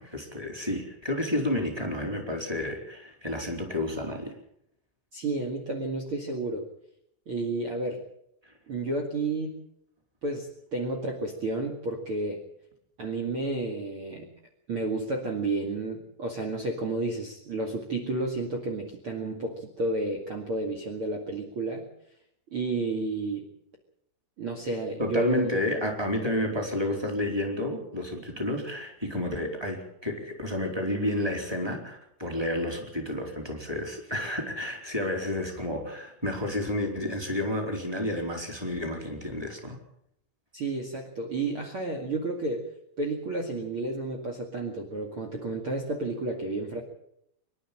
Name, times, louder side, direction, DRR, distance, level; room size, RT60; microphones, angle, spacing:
voice 1, 0.0-4.4 8.4-8.5 25.0-39.8, left 1 dB, 5° right, 2 dB, 3.6 m, -30 dB
voice 2, 5.1-6.7 7.3-8.0 8.7-9.6 10.2-12.4 13.0-14.3 14.7-21.8 22.5-23.5 24.4-25.5 40.5-42.6 43.0-46.8, right 2 dB, 45° right, 4 dB, 1.8 m, -31 dB
25.5 x 12.0 x 8.9 m, 0.74 s
omnidirectional pair, 5.8 m